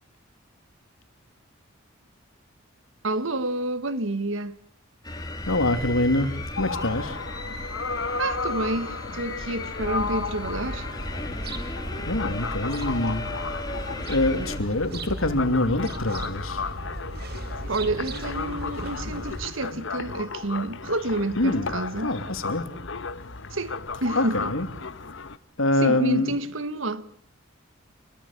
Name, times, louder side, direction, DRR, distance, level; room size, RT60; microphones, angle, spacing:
voice 1, 3.0-4.6 8.2-10.9 17.7-22.1 23.5-24.5 25.8-27.1, right 2 dB, 70° right, 1.6 m, -29 dB
sound 1, 5.0-14.6, left 2 dB, 20° left, 3.2 m, -36 dB
voice 2, 5.5-6.3 6.6-7.2 12.0-13.2 14.1-16.6 21.4-21.7 22.0-22.7 24.1-24.7 25.6-26.4, left 1 dB, 80° left, 2.8 m, -24 dB
sound 2, 6.6-25.4, left 4 dB, 65° left, 1.2 m, -34 dB
sound 3, 9.8-19.5, right 1 dB, 50° right, 2.8 m, -36 dB
27.5 x 21.5 x 7.4 m
head